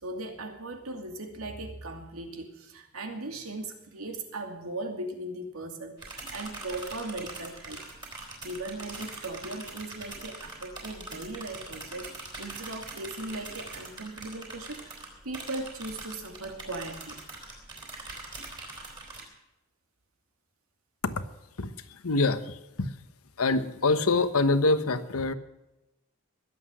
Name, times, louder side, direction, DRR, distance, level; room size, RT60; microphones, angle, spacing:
voice 1, 0.0-17.2, right 2 dB, 85° right, 4 dB, 2.5 m, -38 dB
sound 1, 6.0-19.2, right 2 dB, 20° right, 3.9 m, -43 dB
voice 2, 21.6-23.0 23.4-25.3, left 3 dB, 90° left, 11 dB, 1.2 m, -26 dB
21.0 x 8.2 x 6.3 m, 0.96 s
head